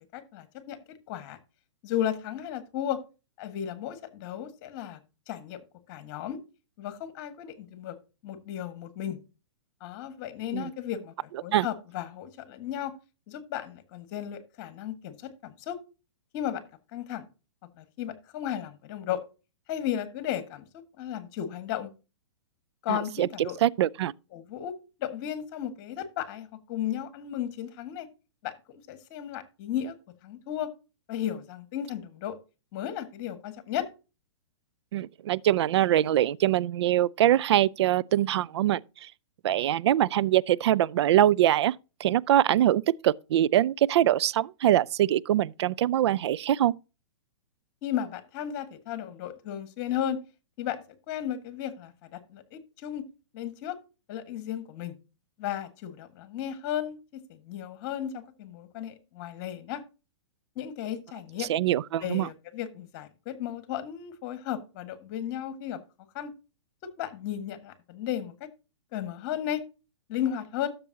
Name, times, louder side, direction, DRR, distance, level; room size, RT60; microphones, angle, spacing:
voice 1, 0.1-1.4 1.8-3.0 3.4-5.0 5.3-5.6 5.9-6.4 6.8-8.0 8.2-9.2 9.8-12.9 13.3-15.8 16.3-16.6 16.9-17.2 17.8-19.2 19.7-21.9 22.8-23.6 24.3-24.7 25.0-28.1 28.4-29.9 30.2-30.7 31.1-32.4 32.7-33.9 47.8-50.2 50.6-53.0 53.3-53.8 54.1-54.9 55.4-59.8 60.5-61.5 62.0-65.8 66.1-66.3 66.8-68.5 68.9-69.6 70.1-70.7, left 10 dB, 40° left, 1.6 m, -34 dB
voice 2, 22.9-24.1 34.9-39.1 39.4-41.7 42.0-46.7 61.4-62.3, right 12 dB, 60° right, 0.4 m, -23 dB
12.5 x 6.8 x 2.8 m
hypercardioid pair, 125°, 16 cm